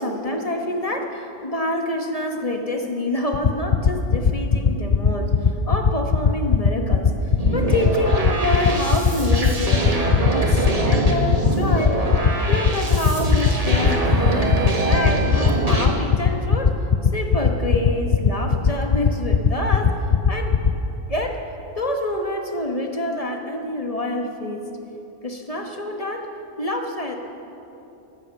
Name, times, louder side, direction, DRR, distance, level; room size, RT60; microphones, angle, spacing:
voice 1, 0.0-15.3 15.6-16.7 17.1-19.9 20.3-20.5 21.1-21.4 21.7-24.6 25.2-26.3 26.6-27.2, left 1 dB, 30° left, 3 dB, 1.2 m, -27 dB
sound 1, 3.3-20.7, left 7 dB, 50° left, 0.4 m, -16 dB
sound 2, 7.4-15.9, right 2 dB, 30° right, 1.5 m, -24 dB
14.0 x 12.5 x 7.1 m, 2.9 s
omnidirectional pair, 1.3 m